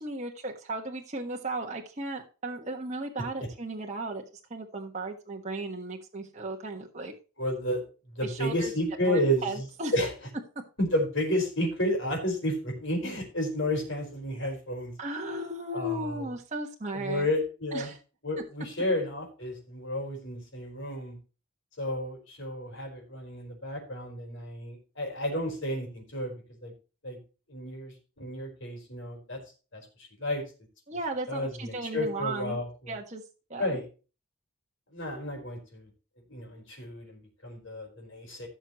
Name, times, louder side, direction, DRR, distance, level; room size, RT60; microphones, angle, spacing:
voice 1, 0.0-4.2 4.5-7.1 8.2-8.7 9.0-9.9 15.0-17.3 17.7-18.0 30.9-32.6 32.9-33.2 33.5-33.8, right 2 dB, 35° right, 1 dB, 1.4 m, -35 dB
voice 2, 7.4-7.8 8.1-9.6 9.9-10.1 10.8-14.9 15.7-16.3 16.9-17.9 18.2-21.2 21.8-26.3 26.6-26.7 27.0-27.2 27.5-29.4 29.7-30.4 31.3-32.9 33.6-33.8 34.9-35.9 36.3-38.5, equal, 55° left, 2 dB, 4.6 m, -31 dB
16.5 x 6.3 x 3.0 m, 0.33 s
head